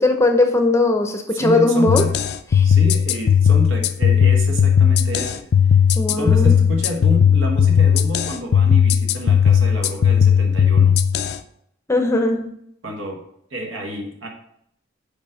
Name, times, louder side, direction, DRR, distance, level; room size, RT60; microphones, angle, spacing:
voice 1, 0.0-2.0 2.5-2.7 6.0-6.5 11.9-12.4, left 2 dB, 15° left, 5 dB, 0.6 m, -18 dB
voice 2, 1.3-2.2 2.6-5.5 6.1-11.0 12.8-13.2 13.5-14.3, equal, 70° right, 2 dB, 1.3 m, -28 dB
sound 1, 1.9-11.4, left 8 dB, 50° left, 0.3 m, -16 dB
5.2 x 4.9 x 5.0 m, 0.71 s
head